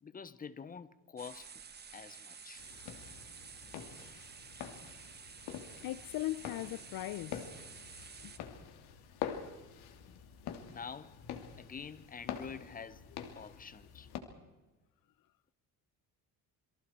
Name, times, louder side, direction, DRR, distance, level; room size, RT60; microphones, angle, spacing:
voice 1, 0.0-1.5 1.9-2.6 10.7-11.2 11.6-13.0 13.4-14.1, left 6 dB, 20° left, 1.1 m, -47 dB
sound 1, 1.2-8.4, right 6 dB, 25° right, 1.6 m, -51 dB
sound 2, 2.6-14.2, left 8 dB, 85° left, 3.0 m, -46 dB
voice 2, 5.8-7.5 8.2-8.3, left 16 dB, 60° left, 0.6 m, -38 dB
28.5 x 23.5 x 4.6 m
cardioid pair, 150°, 38 cm